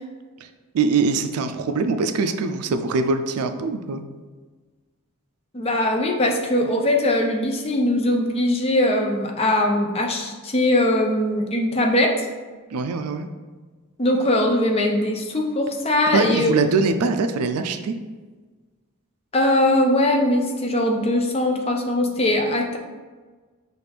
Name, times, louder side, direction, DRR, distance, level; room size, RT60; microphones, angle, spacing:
voice 1, 0.7-4.0 12.7-13.3 16.1-17.9, right 4 dB, 90° right, 8 dB, 0.4 m, -22 dB
voice 2, 5.5-12.3 14.0-16.6 19.3-22.8, left 1 dB, 25° left, 2 dB, 0.4 m, -21 dB
5.8 x 2.5 x 3.3 m, 1.4 s
head